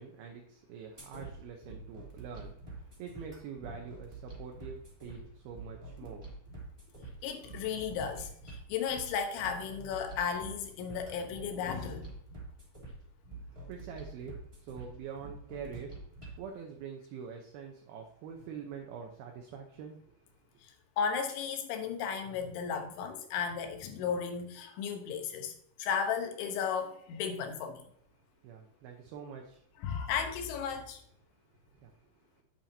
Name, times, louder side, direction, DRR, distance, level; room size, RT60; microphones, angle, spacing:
voice 1, 0.0-6.3 13.3-20.2 28.4-29.7 31.7-32.4, right 6 dB, 75° right, 2 dB, 2.5 m, -45 dB
sound 1, 1.0-16.4, right 2 dB, 10° right, 2.0 m, -47 dB
voice 2, 7.2-12.1 21.0-25.5 25.8-27.8 29.8-31.0, left 7 dB, 90° left, 5 dB, 3.5 m, -34 dB
8.9 x 8.7 x 2.8 m, 0.68 s
omnidirectional pair, 5.2 m